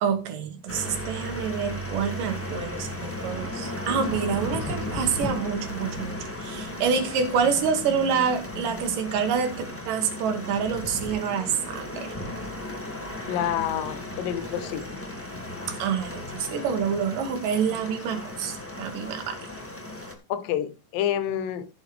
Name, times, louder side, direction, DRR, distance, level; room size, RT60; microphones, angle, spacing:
voice 1, 0.0-12.1 15.7-19.4, right 6 dB, 75° right, 3.0 m, -27 dB
sound 1, 0.7-20.1, left 1 dB, 10° left, 0.9 m, -35 dB
voice 2, 13.3-15.0 20.3-21.7, left 10 dB, 85° left, 2.6 m, -28 dB
15.0 x 6.5 x 3.2 m
omnidirectional pair, 3.9 m